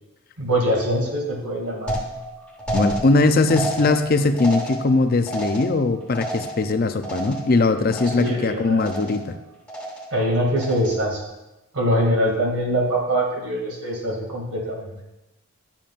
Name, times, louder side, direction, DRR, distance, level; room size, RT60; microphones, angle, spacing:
voice 1, 0.4-1.9 8.0-9.0 10.1-11.2 11.7-14.9, equal, 80° right, -1 dB, 2.5 m, -23 dB
sound 1, 1.9-7.6 7.9-8.5 8.8-9.4 9.7-10.2 10.6-11.1, right 1 dB, 5° left, 1.2 m, -31 dB
voice 2, 2.7-9.4, left 3 dB, 40° left, 9 dB, 0.5 m, -20 dB
12.0 x 7.2 x 2.5 m, 0.99 s
head